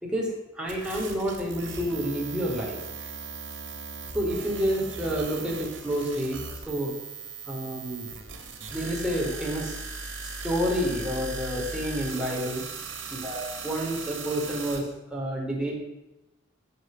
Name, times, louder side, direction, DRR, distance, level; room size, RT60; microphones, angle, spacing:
voice 1, 0.0-2.8 4.1-6.9 7.5-8.1 8.7-9.8 10.4-12.6 13.1-15.7, equal, 5° right, -3 dB, 4.2 m, -29 dB
sound 1, 0.7-14.8, right 4 dB, 75° right, 3.5 m, -38 dB
14.5 x 8.1 x 7.9 m, 0.96 s
head